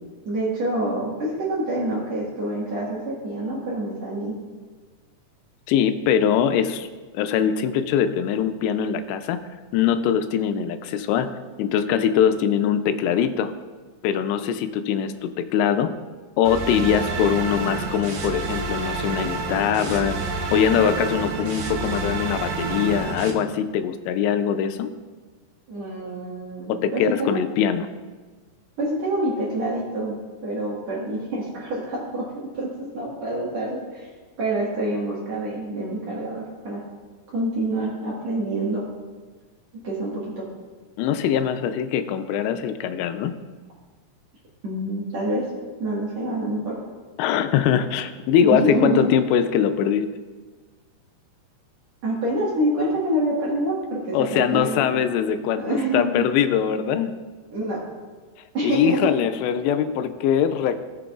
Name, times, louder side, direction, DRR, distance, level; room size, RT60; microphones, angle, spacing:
voice 1, 0.3-4.3 25.7-27.4 28.8-30.2 30.4-34.1 34.4-36.8 37.3-38.9 39.8-40.5 44.6-45.5 45.8-46.8 48.4-49.1 52.0-54.9 55.6-56.3 57.5-57.8 58.5-59.0, right 1 dB, 55° right, -6 dB, 2.1 m, -26 dB
voice 2, 5.7-6.9 7.1-9.4 9.7-11.3 11.6-13.5 14.0-15.9 16.4-20.2 20.5-24.9 26.7-27.9 41.0-43.3 47.2-50.1 54.1-57.2 58.6-60.8, left 8 dB, 85° left, 9 dB, 2.7 m, -22 dB
sound 1, 16.4-23.3, right 3 dB, 75° right, 3.2 m, -29 dB
18.0 x 6.8 x 2.4 m, 1.4 s
omnidirectional pair, 4.9 m